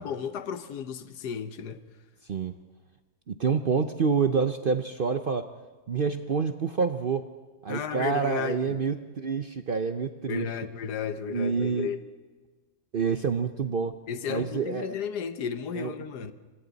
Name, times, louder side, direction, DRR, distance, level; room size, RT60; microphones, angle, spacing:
voice 1, 0.0-1.8 7.7-8.8 10.3-12.0 14.1-16.3, left 7 dB, 80° left, 1.5 m, -33 dB
voice 2, 3.3-5.5 5.9-7.3 7.6-10.5 11.3-11.9 12.9-13.9 14.3-14.9 15.7-15.9, right 5 dB, 50° right, 0.7 m, -27 dB
26.5 x 26.0 x 4.1 m
omnidirectional pair, 1.7 m